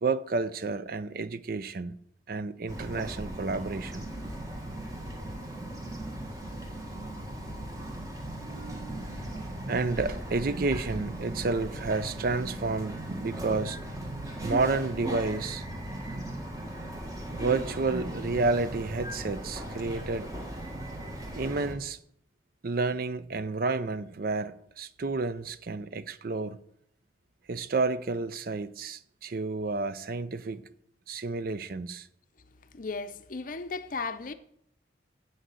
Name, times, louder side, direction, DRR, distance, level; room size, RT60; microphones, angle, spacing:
voice 1, 0.0-2.0 2.3-4.3 8.4-9.1 9.7-13.8 14.4-15.6 17.3-20.3 21.3-22.0 22.6-26.6 27.5-30.6 31.1-32.1, right 3 dB, 50° right, 0.5 m, -30 dB
Bird vocalization bird call bird song, 2.7-21.8, right 1 dB, 20° right, 1.4 m, -38 dB
voice 2, 32.7-34.3, left 4 dB, 45° left, 0.6 m, -35 dB
8.1 x 6.5 x 7.6 m
head